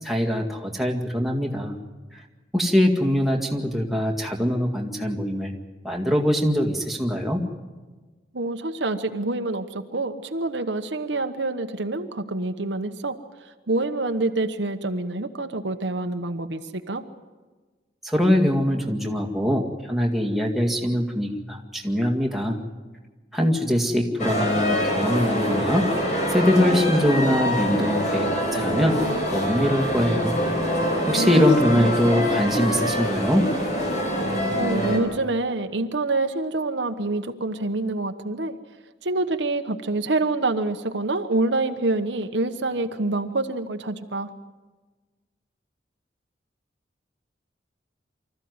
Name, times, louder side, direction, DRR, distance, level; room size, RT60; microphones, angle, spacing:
voice 1, 0.0-1.8 2.1-2.2 2.5-5.5 5.8-7.4 18.0-22.6 23.3-25.9 26.3-29.0 29.3-30.4 31.1-33.5, equal, ahead, 0 dB, 2.0 m, -22 dB
voice 2, 8.3-13.2 13.7-17.0 31.1-31.5 31.7-31.9 34.5-38.6 39.0-44.3, right 2 dB, 80° right, 7 dB, 1.1 m, -26 dB
sound 1, 24.2-35.0, equal, 40° left, 5.3 m, -25 dB
25.0 x 14.5 x 9.5 m, 1.3 s
head